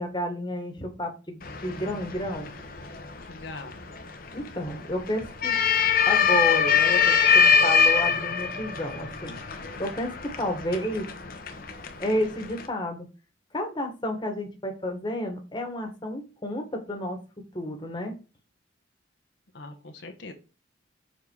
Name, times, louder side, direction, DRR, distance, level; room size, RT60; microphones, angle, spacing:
voice 1, 0.0-2.5 4.3-5.5 6.0-9.4 9.8-11.1 12.0-13.1 13.5-17.2 17.5-18.1, left 1 dB, 25° left, 3 dB, 1.8 m, -31 dB
sound 1, 1.4-12.7, left 6 dB, 50° left, 1.2 m, -24 dB
voice 2, 3.3-3.7 19.5-20.3, left 3 dB, 70° left, 3 dB, 1.2 m, -41 dB
7.0 x 4.5 x 4.8 m, 0.32 s
head